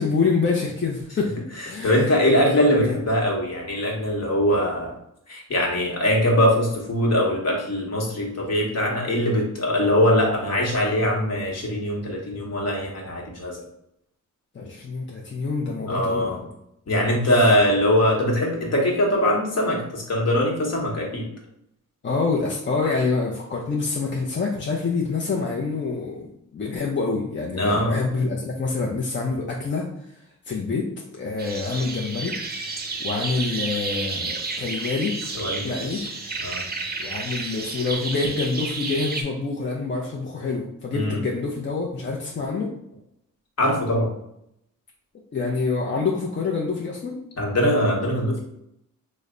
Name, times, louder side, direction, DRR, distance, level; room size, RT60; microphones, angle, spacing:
voice 1, 0.0-3.1 14.5-16.3 17.2-17.5 22.0-30.1 30.5-30.9 31.1-32.3 33.0-35.2 35.6-36.0 37.0-42.7 45.3-47.2, left 4 dB, 35° left, -2 dB, 0.5 m, -26 dB
voice 2, 1.6-4.9 5.3-13.6 15.9-16.4 16.9-21.2 27.6-28.0 35.3-36.1 36.4-36.7 40.9-41.2 43.6-44.1 47.4-48.4, left 1 dB, 50° left, -1 dB, 1.1 m, -22 dB
sound 1, 31.4-39.2, right 3 dB, 30° right, 0.6 m, -31 dB
3.2 x 2.1 x 3.7 m, 0.77 s
cardioid pair, 60°, 32 cm